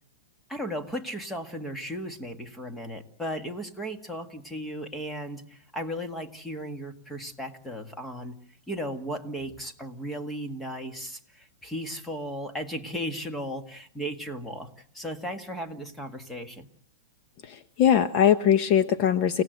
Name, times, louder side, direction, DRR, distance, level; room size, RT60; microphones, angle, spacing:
voice 1, 0.5-8.4 8.7-16.7, equal, 5° left, 7 dB, 1.8 m, -36 dB
voice 2, 17.4-19.4, left 9 dB, 35° left, 10 dB, 1.0 m, -21 dB
29.5 x 17.5 x 7.9 m, 0.70 s
supercardioid pair, 160°, 0 cm